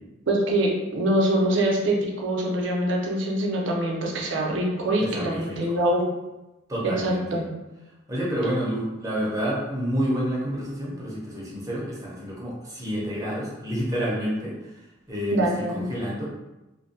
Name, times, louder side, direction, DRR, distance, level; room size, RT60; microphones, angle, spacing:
voice 1, 0.3-6.0 6.8-7.4 15.3-15.9, right 1 dB, 65° right, -1 dB, 0.5 m, -24 dB
voice 2, 5.0-5.8 6.7-7.4 8.1-14.8 15.1-16.2, equal, 15° right, -5 dB, 0.6 m, -29 dB
2.5 x 2.2 x 2.6 m, 1.0 s
head